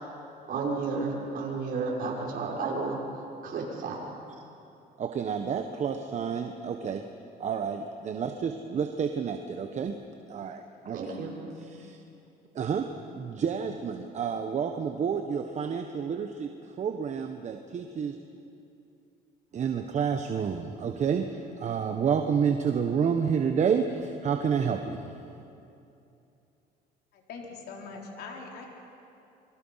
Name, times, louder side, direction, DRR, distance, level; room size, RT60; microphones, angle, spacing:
voice 1, 0.5-3.0 3.4-4.0 10.9-11.4, right 4 dB, 60° right, -2 dB, 6.2 m, -32 dB
voice 2, 5.0-7.0 7.4-10.0 10.3-11.1 11.7-12.0 12.5-16.5 16.8-18.2 19.5-25.0, right 7 dB, 45° right, 6 dB, 1.3 m, -29 dB
voice 3, 27.1-28.7, left 4 dB, 75° left, 0 dB, 3.8 m, -42 dB
27.0 x 23.5 x 5.8 m, 2.7 s
cardioid pair, 110°, 17 cm